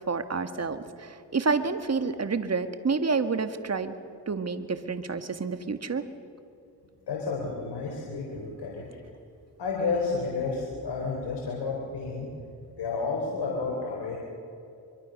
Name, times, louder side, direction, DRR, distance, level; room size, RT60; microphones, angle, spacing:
voice 1, 0.0-3.9 4.3-6.1, right 4 dB, 40° right, 9 dB, 1.8 m, -29 dB
voice 2, 7.1-8.9 9.6-12.3 12.8-14.2, left 4 dB, 75° left, -1 dB, 4.2 m, -31 dB
23.5 x 23.5 x 6.6 m, 2.4 s
cardioid pair, 55°, 41 cm